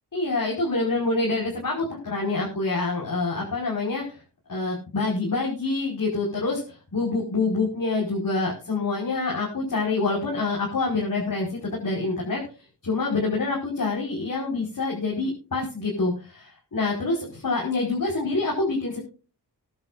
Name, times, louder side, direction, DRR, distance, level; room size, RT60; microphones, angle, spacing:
voice 1, 0.1-4.0 4.5-6.6 6.9-12.4 12.8-19.0, left 3 dB, 50° left, -3 dB, 5.2 m, -26 dB
22.0 x 10.5 x 2.6 m, 0.35 s
wide cardioid pair, 115°, 40 cm